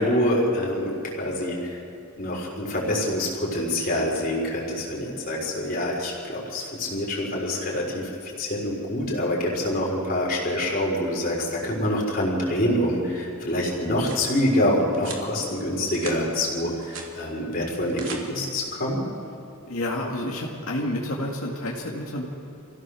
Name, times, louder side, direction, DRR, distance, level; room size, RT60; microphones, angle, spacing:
voice 1, 0.0-1.8 2.2-8.0 8.4-19.0, left 1 dB, 40° left, -2 dB, 4.0 m, -26 dB
sound 1, 13.9-14.3 14.9-15.3 15.7-16.2 16.6-17.1 17.7-18.2, right 5 dB, 65° right, 2.8 m, -39 dB
voice 2, 19.7-22.2, left 1 dB, 80° left, -3 dB, 2.3 m, -29 dB
27.0 x 16.0 x 6.4 m, 2.7 s
head